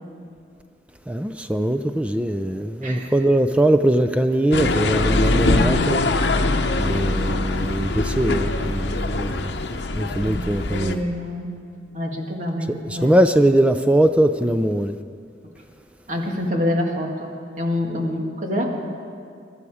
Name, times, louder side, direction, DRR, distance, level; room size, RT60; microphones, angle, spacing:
voice 1, 1.1-6.0 6.8-9.5 9.9-11.0 12.7-15.0, right 1 dB, 5° right, 0.4 m, -21 dB
voice 2, 2.8-3.1 5.2-5.9 6.5-7.1 10.3-11.5 11.9-13.2 16.1-17.3 17.6-18.9, left 1 dB, 40° right, 1.9 m, -27 dB
sound 1, 4.5-11.0, left 2 dB, 70° left, 0.9 m, -23 dB
24.0 x 12.0 x 4.9 m
head